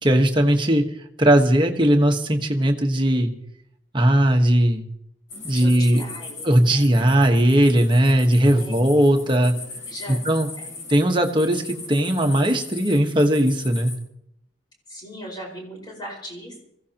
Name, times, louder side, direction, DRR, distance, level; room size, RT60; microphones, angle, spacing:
voice 1, 0.0-0.8 1.2-3.3 3.9-4.9 5.4-6.0 6.4-9.5 10.1-10.5 10.9-13.9, right 1 dB, 25° right, 4 dB, 1.3 m, -18 dB
sound 1, 5.3-14.0, left 3 dB, 90° left, 5.3 m, -39 dB
voice 2, 5.4-6.9 8.5-8.9 9.9-10.2 10.6-10.7 14.9-16.6, equal, 20° left, -1 dB, 4.9 m, -39 dB
25.0 x 15.5 x 2.9 m, 0.74 s
head